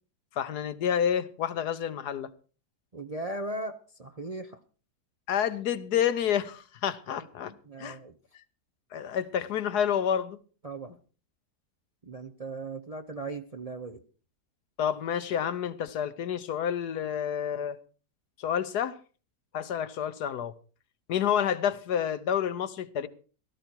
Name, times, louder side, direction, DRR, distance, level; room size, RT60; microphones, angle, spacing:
voice 1, 0.4-2.3 5.3-7.5 7.8-8.0 8.9-10.4 14.8-17.8 18.4-19.0 19.5-20.5 21.1-23.1, left 9 dB, 75° left, 1.5 m, -29 dB
voice 2, 2.9-4.6 7.5-8.2 10.6-10.9 12.0-14.0, right 2 dB, 35° right, 0.6 m, -38 dB
17.0 x 13.0 x 4.5 m
omnidirectional pair, 1.7 m